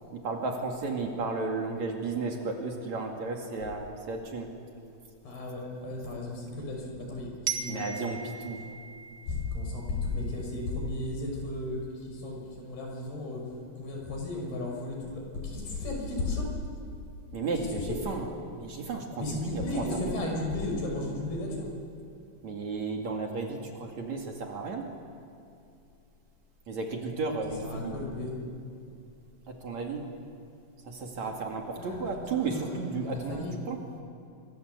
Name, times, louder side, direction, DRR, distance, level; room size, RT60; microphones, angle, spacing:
voice 1, 0.1-4.5 7.7-8.6 17.3-18.3 18.6-20.0 22.4-24.9 26.7-28.0 29.5-30.1 30.9-33.8, right 4 dB, 50° right, 1 dB, 3.3 m, -34 dB
voice 2, 5.2-7.8 9.3-16.5 17.6-18.0 19.2-21.7 27.6-28.4 31.7-32.0 32.3-33.6, left 2 dB, 75° left, 1 dB, 7.6 m, -34 dB
Glockenspiel, 7.5-10.3, right 6 dB, 85° right, 1.0 m, -38 dB
26.5 x 25.5 x 8.1 m, 2.6 s
omnidirectional pair, 4.5 m